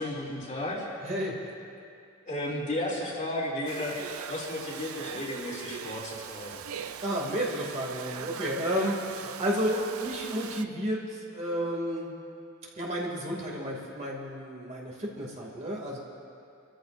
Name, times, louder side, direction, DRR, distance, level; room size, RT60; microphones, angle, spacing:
voice 1, 0.0-0.9 2.3-3.9 4.3-6.5, left 1 dB, 35° left, -5 dB, 2.9 m, -33 dB
voice 2, 1.0-1.4 7.0-12.1 12.7-16.0, equal, 35° right, -3 dB, 2.6 m, -31 dB
Domestic sounds home sounds, 3.7-10.7, right 8 dB, 75° right, 0.5 m, -41 dB
27.0 x 14.0 x 2.6 m, 2.4 s
head